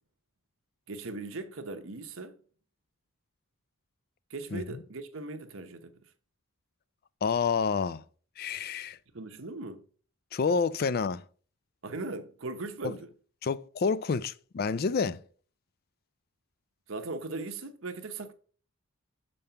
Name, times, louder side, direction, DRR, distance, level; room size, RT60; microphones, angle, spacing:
voice 1, 0.9-2.3 4.3-6.0 9.1-9.8 11.8-13.1 16.9-18.3, right 3 dB, 65° right, 0.9 m, -39 dB
voice 2, 7.2-8.0 8.4-9.0 10.3-11.2 12.8-12.9 13.4-15.2, left 5 dB, 45° left, 0.3 m, -28 dB
6.7 x 5.4 x 5.7 m
head